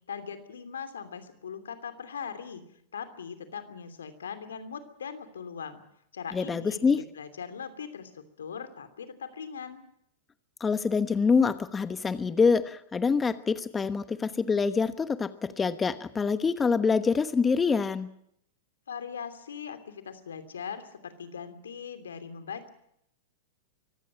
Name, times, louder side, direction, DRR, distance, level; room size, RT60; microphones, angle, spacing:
voice 1, 0.1-2.6 2.9-5.8 6.1-9.8 18.9-22.7, left 7 dB, 80° left, 9 dB, 2.9 m, -40 dB
voice 2, 6.3-7.0 10.6-18.1, left 5 dB, 15° left, 12 dB, 1.1 m, -25 dB
24.5 x 15.5 x 8.8 m, 0.75 s
hypercardioid pair, 105°, 0 cm